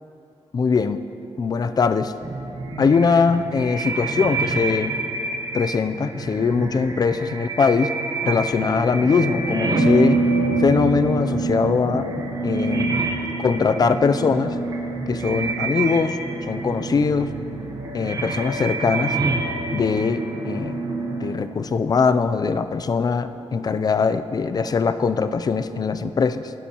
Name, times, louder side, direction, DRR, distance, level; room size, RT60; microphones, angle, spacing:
voice 1, 0.5-1.0 1.4-2.1 2.8-4.9 5.5-7.9 8.2-10.2 10.6-12.1 12.4-13.0 13.4-14.5 15.1-16.2 16.5-17.3 17.9-19.2 19.7-20.8 21.2-26.5, left 5 dB, 35° left, 11 dB, 0.4 m, -21 dB
sound 1, 2.2-21.3, right 3 dB, 35° right, 1.0 m, -26 dB
17.5 x 9.8 x 2.9 m, 3.0 s
wide cardioid pair, 130°, 11 cm